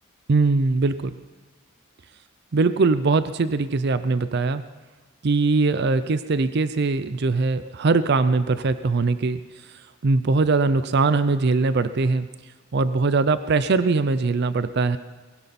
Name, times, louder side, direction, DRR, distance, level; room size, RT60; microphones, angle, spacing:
voice 1, 0.3-1.2 2.5-4.6 5.2-9.4 9.7-12.3 12.7-15.0, right 3 dB, 55° right, 13 dB, 0.5 m, -21 dB
20.0 x 17.0 x 4.2 m, 1.3 s
head